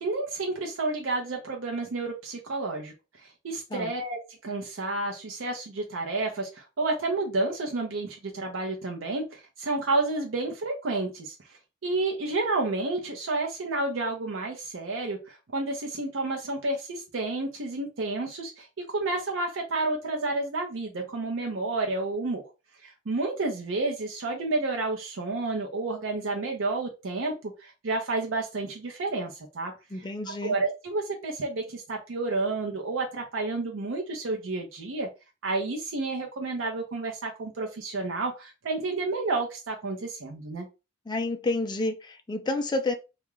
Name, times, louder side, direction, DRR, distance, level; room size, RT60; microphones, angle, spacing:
voice 1, 0.0-2.9 3.4-11.3 11.8-22.4 23.1-27.3 27.6-29.7 30.3-35.1 35.4-40.6, right 2 dB, 70° right, 0.6 m, -30 dB
voice 2, 29.9-30.6 41.1-42.9, left 2 dB, 20° left, 0.3 m, -29 dB
2.3 x 2.1 x 3.0 m
head